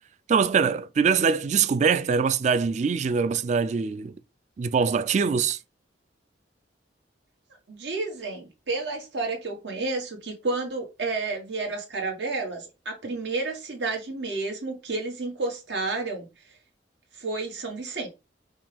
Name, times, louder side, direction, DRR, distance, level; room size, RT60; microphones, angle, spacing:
voice 1, 0.3-4.1 4.6-5.6, right 6 dB, 40° right, 0.3 m, -23 dB
voice 2, 7.7-16.3 17.1-18.1, right 3 dB, 80° right, 1.5 m, -31 dB
5.3 x 2.3 x 3.4 m
head